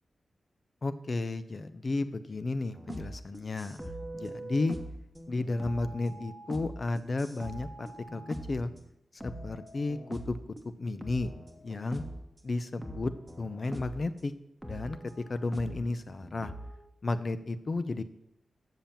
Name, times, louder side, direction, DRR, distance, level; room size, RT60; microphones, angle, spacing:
voice 1, 0.8-4.8 5.3-8.7 9.2-10.4 10.8-11.3 11.6-12.0 12.4-14.3 14.7-16.5 17.0-18.0, left 3 dB, 50° left, 12 dB, 0.6 m, -33 dB
sound 1, 2.7-8.9 9.2-10.7 11.0-12.3 12.8-14.1 14.6-16.8, right 1 dB, ahead, 1.2 m, -43 dB
7.2 x 5.9 x 7.2 m, 0.80 s
cardioid pair, 70°, 0 cm